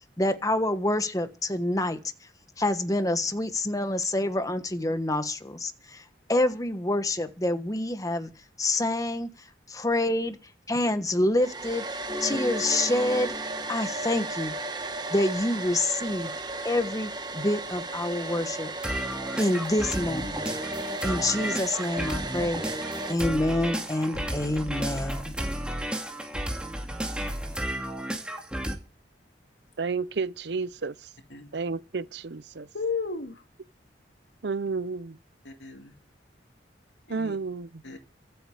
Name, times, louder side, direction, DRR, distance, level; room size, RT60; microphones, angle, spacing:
voice 1, 0.2-2.0 2.6-5.7 6.3-8.3 8.6-9.3 9.7-10.4 10.7-11.8 12.2-13.3 13.7-14.5 15.1-16.3 16.6-18.7 19.4-20.4 21.0-22.6 23.1-25.3, left 1 dB, 20° left, 1.4 m, -27 dB
Domestic sounds home sounds, 11.4-23.1, right 2 dB, 25° right, 1.3 m, -35 dB
sound 1, 12.1-13.8 18.8-28.8, right 1 dB, 5° right, 2.3 m, -33 dB
voice 2, 29.8-31.1 31.5-32.7 34.4-35.2 37.1-37.8, right 4 dB, 70° right, 0.7 m, -31 dB
voice 3, 32.7-33.4 35.4-35.9 37.1-37.4 37.8-38.0, left 4 dB, 90° left, 2.4 m, -34 dB
24.0 x 8.2 x 5.0 m
head